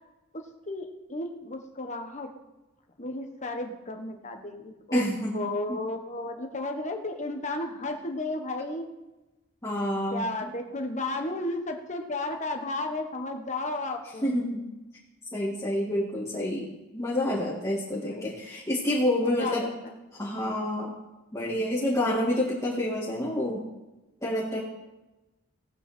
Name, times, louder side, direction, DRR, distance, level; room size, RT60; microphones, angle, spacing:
voice 1, 0.3-2.3 3.0-5.1 5.3-8.9 10.1-14.3 17.9-18.3 19.2-19.9, left 2 dB, 35° left, 4 dB, 1.4 m, -33 dB
voice 2, 4.9-5.4 5.7-5.8 9.6-10.5 14.2-14.6 15.3-19.7 20.2-20.9 21.3-23.6 24.2-24.6, left 1 dB, 15° left, -7 dB, 2.2 m, -28 dB
17.5 x 9.1 x 4.5 m, 1.0 s
head